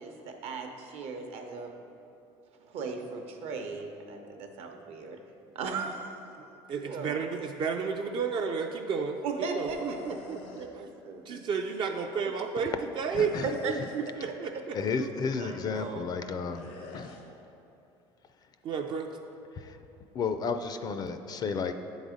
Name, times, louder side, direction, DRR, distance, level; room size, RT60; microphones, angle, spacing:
voice 1, 0.0-1.7 2.7-5.2 5.5-6.1 6.8-7.2 9.2-10.2 10.6-11.2 13.4-13.7 14.2-14.3 15.4-16.0, right 4 dB, 65° right, 4 dB, 0.8 m, -37 dB
voice 2, 6.7-9.2 9.6-10.9 11.3-13.4 13.7-15.1 18.6-19.1, right 5 dB, 45° right, 3 dB, 0.4 m, -32 dB
sound 1, 9.6-10.7 13.1-14.1 16.5-17.2, left 3 dB, 85° left, 0.9 m, -46 dB
voice 3, 13.1-13.5 14.7-16.7 16.9-17.1 19.6-19.8 20.1-21.7, left 5 dB, 35° left, 9 dB, 0.4 m, -32 dB
7.5 x 4.0 x 4.9 m, 2.8 s
cardioid pair, 115°, 11 cm